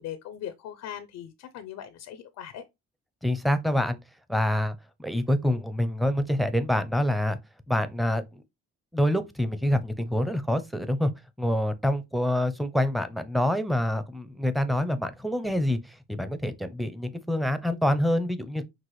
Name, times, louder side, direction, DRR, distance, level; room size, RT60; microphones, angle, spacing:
voice 1, 0.0-2.6, left 10 dB, 85° left, 0.6 m, -39 dB
voice 2, 3.2-4.0 4.3-7.4 7.7-8.4 8.9-11.1 11.4-18.6, left 1 dB, ahead, 0.6 m, -26 dB
5.9 x 2.5 x 3.1 m
cardioid pair, 90°, 30 cm